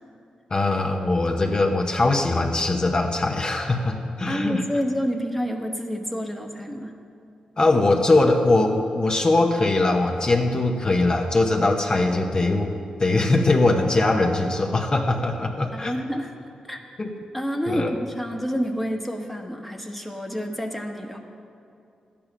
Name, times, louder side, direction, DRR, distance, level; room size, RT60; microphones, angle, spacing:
voice 1, 0.5-4.6 7.6-12.7 13.0-15.9 17.0-17.1 17.7-17.9, left 2 dB, 35° left, 2 dB, 0.9 m, -21 dB
voice 2, 4.3-7.0 15.7-16.3 16.6-16.8 17.3-21.2, equal, ahead, 2 dB, 1.2 m, -28 dB
12.5 x 8.7 x 6.0 m, 2.5 s
cardioid pair, 75°, 2 cm